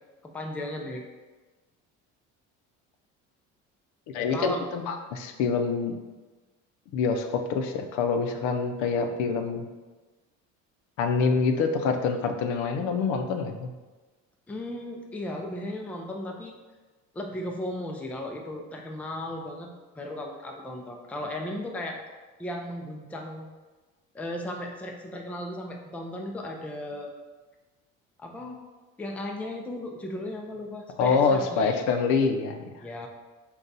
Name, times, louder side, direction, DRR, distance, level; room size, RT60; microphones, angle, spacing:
voice 1, 0.3-1.0 4.3-4.6 14.5-16.5 17.1-19.7 19.9-22.0 22.4-23.5 24.1-27.1 28.2-28.6 29.0-31.8 32.8-33.1, left 1 dB, 5° left, 1 dB, 0.3 m, -35 dB
voice 2, 4.1-6.0 6.9-9.7 11.0-13.7 31.0-32.7, left 5 dB, 80° left, 5 dB, 0.5 m, -26 dB
3.8 x 2.3 x 3.9 m, 1.2 s
cardioid pair, 120°, 29 cm